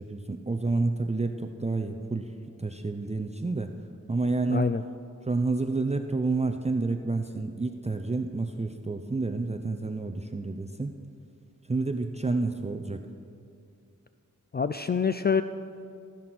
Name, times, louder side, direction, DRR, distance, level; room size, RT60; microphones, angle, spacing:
voice 1, 0.0-2.3 2.6-3.7 4.1-4.7 5.3-10.9 11.7-13.1, right 3 dB, 20° right, 6 dB, 0.7 m, -29 dB
voice 2, 4.5-4.8 14.5-15.4, left 5 dB, 35° left, 10 dB, 0.4 m, -25 dB
15.0 x 14.5 x 6.1 m, 2.4 s
wide cardioid pair, 125°, 30 cm